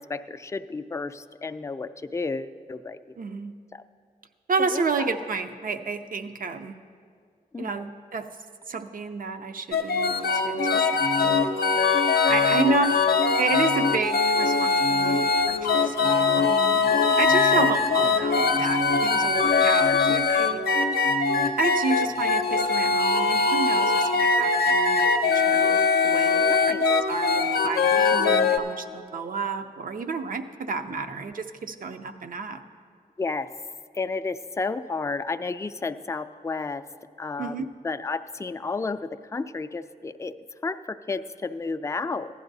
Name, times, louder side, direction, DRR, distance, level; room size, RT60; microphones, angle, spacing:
voice 1, 0.0-3.0 4.7-4.8 5.1-5.2 7.5-7.7 12.6-12.9 17.5-18.0 19.9-20.0 26.5-26.8 33.2-33.5 33.9-36.8 37.2-40.4 40.6-42.3, left 3 dB, 20° left, 9 dB, 0.4 m, -32 dB
voice 2, 3.2-3.5 4.5-6.8 7.6-8.3 8.7-10.9 11.2-11.4 12.3-12.9 13.4-20.6 21.6-26.7 27.1-32.6 37.4-37.6, right 4 dB, 65° right, 8 dB, 0.6 m, -31 dB
sound 1, 9.7-28.6, left 4 dB, 80° left, 0.5 m, -22 dB
15.5 x 11.0 x 2.7 m, 2.1 s
cardioid pair, 55°, 16 cm